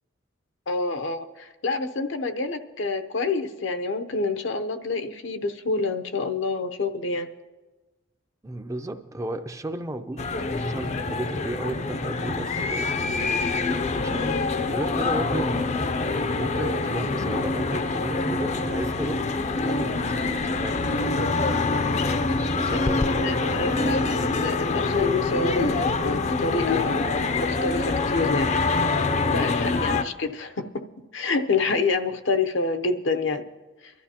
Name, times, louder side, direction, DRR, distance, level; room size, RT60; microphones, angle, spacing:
voice 1, 0.7-7.3 22.7-22.8 23.2-28.5 29.3-30.8 31.1-33.4 33.8-33.9, left 3 dB, 75° left, 0.8 m, -27 dB
voice 2, 8.4-13.6 13.9-15.9 16.2-21.3 22.5-24.1, right 1 dB, 15° right, 0.4 m, -34 dB
sound 1, 10.2-30.0, left 3 dB, 35° left, 0.5 m, -25 dB
23.5 x 12.5 x 2.9 m
head